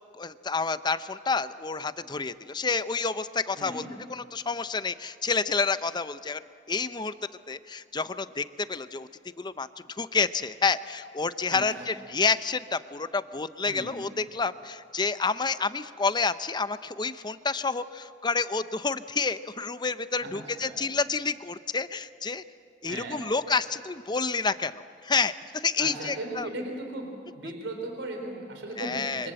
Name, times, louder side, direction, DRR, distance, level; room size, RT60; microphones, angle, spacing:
voice 1, 0.1-6.4 6.7-7.1 7.5-9.1 9.4-9.7 10.0-22.4 22.8-26.5 28.8-29.3, left 4 dB, 25° left, 13 dB, 0.6 m, -29 dB
voice 2, 3.6-3.9 11.5-11.9 13.6-14.0 20.2-20.8 22.9-23.2 25.8-27.1 27.4-29.3, right 2 dB, 80° right, 2 dB, 3.9 m, -37 dB
27.0 x 25.0 x 7.7 m, 2.4 s
head